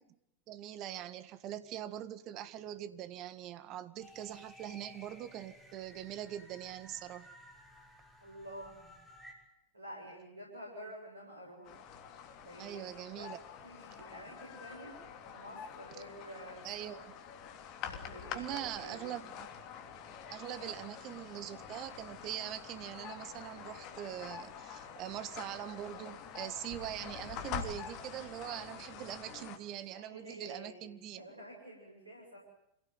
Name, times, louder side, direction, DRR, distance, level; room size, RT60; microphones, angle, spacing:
voice 1, 0.5-7.3 12.6-13.4 16.6-17.1 18.2-19.5 20.3-31.3, right 12 dB, 35° right, 13 dB, 1.8 m, -43 dB
sound 1, 4.0-9.3, left 1 dB, ahead, 6.0 m, -56 dB
voice 2, 8.2-8.9 9.7-11.7 12.4-12.8 13.1-13.3 13.6-15.0 15.3-16.9 17.9-19.0 29.9-32.4, equal, 80° right, -1 dB, 8.0 m, -49 dB
sound 2, 11.6-29.6, left 7 dB, 40° left, 3.1 m, -46 dB
27.0 x 17.5 x 9.6 m, 0.80 s
figure-of-eight pair, 90°, 0 cm